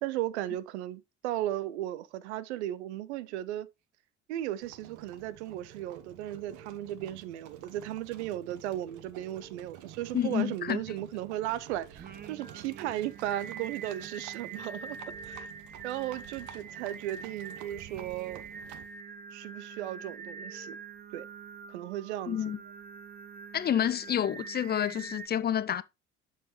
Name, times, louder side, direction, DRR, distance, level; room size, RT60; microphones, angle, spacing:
voice 1, 0.0-3.7 4.3-15.0 15.2-15.5 15.8-18.4 19.3-20.8 21.1-21.3 21.7-22.4, right 13 dB, 75° right, 0.6 m, -36 dB
Livestock farm animals working animals, 4.6-19.0, right 11 dB, 60° right, 1.0 m, -51 dB
sound 1, 5.7-6.7 8.6-9.6 11.5-12.5 14.5-15.5 17.4-18.4 20.3-20.7, right 4 dB, 5° left, 2.2 m, -55 dB
voice 2, 10.1-10.8 22.3-22.6 23.5-25.8, left 9 dB, 30° left, 0.5 m, -29 dB
Singing, 12.0-25.3, right 5 dB, 25° right, 0.9 m, -45 dB
7.3 x 6.5 x 3.0 m
figure-of-eight pair, 55°, 35 cm